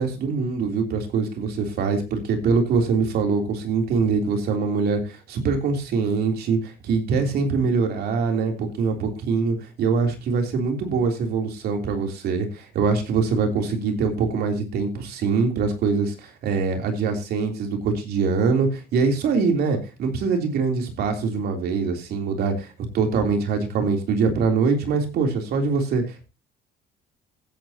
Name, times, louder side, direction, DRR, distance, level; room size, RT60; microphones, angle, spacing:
voice 1, 0.0-26.3, right 4 dB, 70° right, 3 dB, 3.4 m, -23 dB
16.0 x 9.1 x 2.9 m, 0.28 s
cardioid pair, 110°, 17 cm